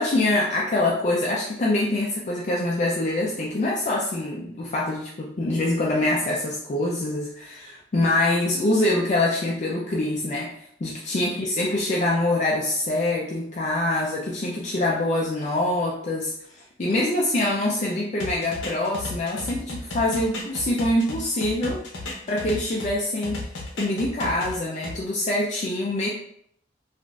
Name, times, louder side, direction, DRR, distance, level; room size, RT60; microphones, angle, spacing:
voice 1, 0.0-10.5 10.8-21.8 22.3-23.5 23.8-26.1, left 1 dB, 40° left, -3 dB, 0.4 m, -25 dB
sound 1, 18.2-22.9 23.2-25.0, left 2 dB, 80° left, 0.7 m, -34 dB
3.8 x 2.5 x 2.3 m, 0.70 s
head